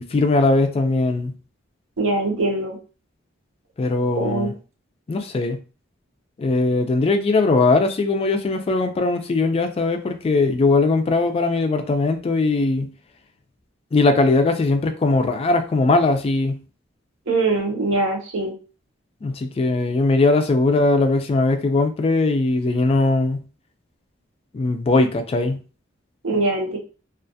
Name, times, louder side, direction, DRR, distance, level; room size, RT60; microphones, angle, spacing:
voice 1, 0.0-1.3 3.8-4.5 5.1-5.6 6.4-12.9 13.9-16.6 19.2-23.4 24.5-25.6, left 3 dB, 30° left, 0.3 m, -20 dB
voice 2, 2.0-2.8 4.2-4.5 17.3-18.5 26.2-26.8, right 2 dB, 80° right, 0.8 m, -22 dB
2.4 x 2.2 x 2.6 m
head